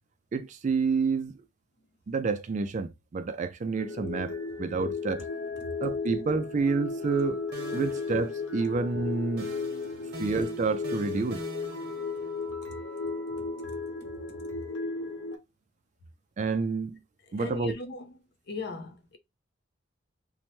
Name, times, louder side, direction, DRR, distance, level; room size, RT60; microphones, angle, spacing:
voice 1, 0.3-1.4 2.1-5.2 5.8-7.4 7.7-9.5 10.2-11.4 16.4-17.0 17.3-17.8, right 4 dB, 40° right, 0.3 m, -29 dB
sound 1, 3.8-15.4, left 4 dB, 85° left, 0.9 m, -35 dB
sound 2, 6.9-7.2 7.5-8.9 9.4-12.5, right 2 dB, 55° right, 1.0 m, -45 dB
voice 2, 17.4-18.1 18.5-19.2, left 3 dB, 55° left, 0.6 m, -38 dB
2.7 x 2.1 x 3.0 m
head